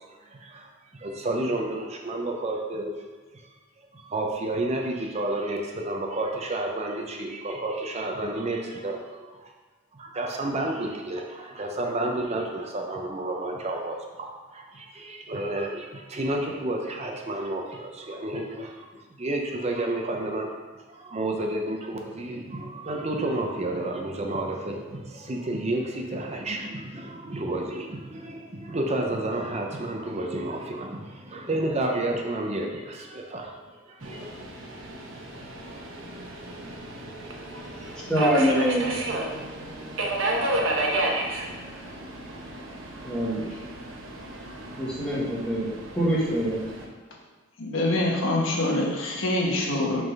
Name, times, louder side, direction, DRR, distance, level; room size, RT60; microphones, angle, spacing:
voice 1, 0.2-3.1 3.3-3.5 3.9-9.5 9.9-20.5 20.9-34.3, right 2 dB, 35° right, 1 dB, 0.6 m, -31 dB
Subway metro underground, 34.0-46.8, right 1 dB, 75° right, 0.9 m, -32 dB
voice 2, 38.1-39.0 43.0-43.5 44.8-46.6, equal, 5° left, -7 dB, 1.6 m, -24 dB
voice 3, 47.6-50.0, left 1 dB, 75° left, -1 dB, 1.1 m, -25 dB
5.6 x 3.8 x 5.3 m, 1.4 s
head